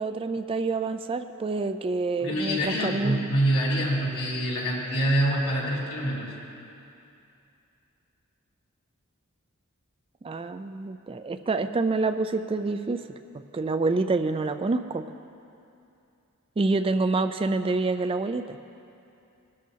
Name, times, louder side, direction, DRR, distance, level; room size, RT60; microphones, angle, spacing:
voice 1, 0.0-3.2 10.2-13.0 13.5-15.0 16.6-18.6, right 3 dB, 25° right, 9 dB, 0.3 m, -27 dB
voice 2, 2.2-6.3, right 1 dB, 75° left, -5 dB, 3.6 m, -26 dB
20.0 x 13.0 x 2.8 m, 2.7 s
head